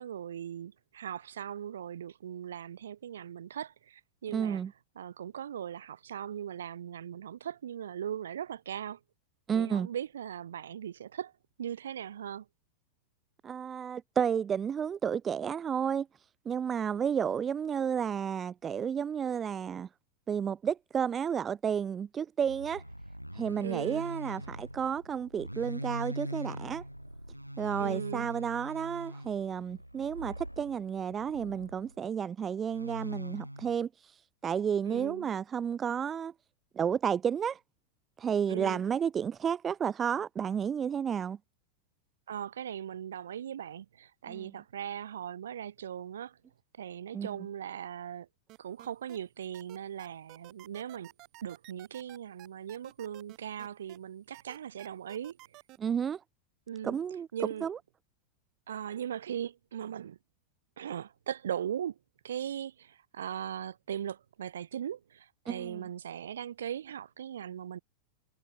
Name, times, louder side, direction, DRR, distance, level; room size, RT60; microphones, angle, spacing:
voice 1, 0.0-4.6 5.0-9.0 9.5-11.3 11.6-12.5 23.6-24.0 27.8-28.3 34.9-35.3 38.5-38.8 42.3-46.4 46.8-48.3 48.6-51.1 51.4-55.4 56.7-57.0 57.3-57.7 58.7-60.2 60.8-62.0 62.2-67.8, right 9 dB, 65° right, 3.5 m, -39 dB
voice 2, 4.3-4.7 9.5-9.9 13.4-16.1 16.5-19.9 20.3-22.8 23.4-26.8 27.6-33.9 34.4-36.3 36.7-37.6 38.2-41.4 44.3-44.6 47.1-47.5 55.8-56.2 56.8-57.3 57.6-57.8 65.5-65.9, right 7 dB, 20° right, 0.5 m, -32 dB
sound 1, 22.4-32.0 32.7-33.8, equal, 90° right, 0.6 m, -42 dB
sound 2, 48.5-49.2 49.5-54.0 54.3-55.8, right 20 dB, 40° right, 5.7 m, -52 dB
figure-of-eight pair, 90°, 0 cm